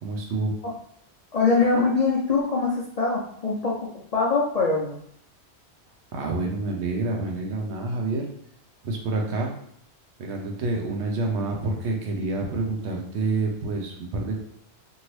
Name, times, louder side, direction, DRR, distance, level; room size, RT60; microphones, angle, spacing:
voice 1, 0.0-0.5 6.1-8.3 8.8-9.5 10.2-14.4, right 2 dB, 80° right, 1 dB, 1.0 m, -28 dB
voice 2, 1.3-5.0, left 4 dB, 55° left, -4 dB, 0.4 m, -23 dB
2.7 x 2.7 x 3.0 m, 0.67 s
omnidirectional pair, 1.1 m